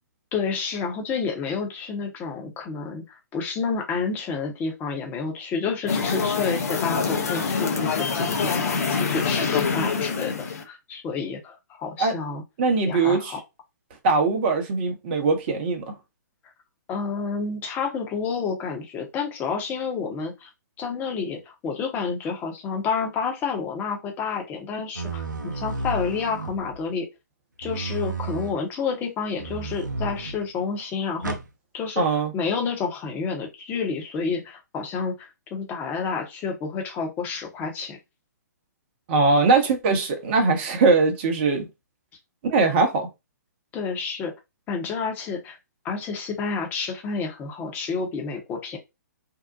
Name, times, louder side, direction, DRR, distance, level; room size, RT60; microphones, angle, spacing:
voice 1, 0.3-10.3 10.6-12.4 12.8-13.4 16.9-20.5 20.8-27.1 27.6-31.4 31.7-38.0 43.7-44.3 44.7-45.6 45.8-48.8, left 5 dB, 20° left, 0.8 m, -29 dB
sound 1, 5.9-10.6, left 5 dB, 55° left, 0.7 m, -25 dB
voice 2, 12.6-13.3 14.0-15.9 32.0-32.3 39.1-41.7 42.4-43.1, right 3 dB, 35° right, 0.8 m, -21 dB
sound 2, 24.9-26.9 27.6-28.6 29.4-30.4 31.2-31.5, right 3 dB, 85° right, 0.5 m, -32 dB
2.7 x 2.0 x 2.5 m
figure-of-eight pair, 125°, 10 cm